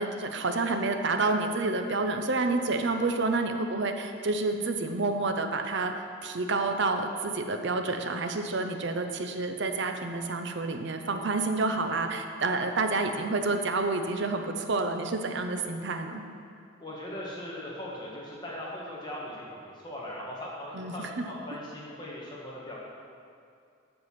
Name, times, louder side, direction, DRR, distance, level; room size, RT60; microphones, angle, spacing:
voice 1, 0.0-5.9 6.2-16.2 20.7-21.3, right 3 dB, 60° right, 6 dB, 0.7 m, -29 dB
voice 2, 16.8-22.8, left 1 dB, 20° left, -5 dB, 1.5 m, -39 dB
7.8 x 7.0 x 5.9 m, 2.4 s
head